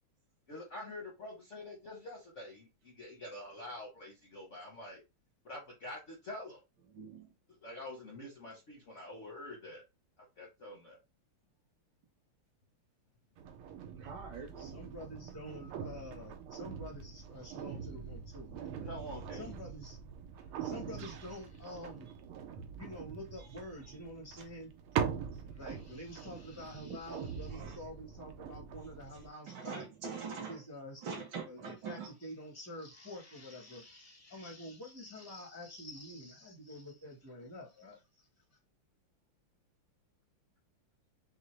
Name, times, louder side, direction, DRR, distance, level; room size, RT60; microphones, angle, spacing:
voice 1, 0.5-5.0 5.4-6.6 7.6-9.8 10.4-11.0 18.9-19.4, left 1 dB, 55° left, 0.8 m, -46 dB
voice 2, 6.9-7.3 13.9-14.7 20.6-20.7 26.3-26.4 26.8-27.0 27.5-27.8 29.5-30.6 31.0-32.1, right 5 dB, 60° right, 1.4 m, -43 dB
sound 1, 13.4-29.3, right 7 dB, 85° right, 1.6 m, -43 dB
voice 3, 14.6-18.9 19.3-20.0 20.4-22.1 22.8-24.7 25.4-29.8 30.5-31.1 31.5-38.3, left 1 dB, 20° left, 0.4 m, -48 dB
6.2 x 2.1 x 3.1 m
omnidirectional pair, 2.4 m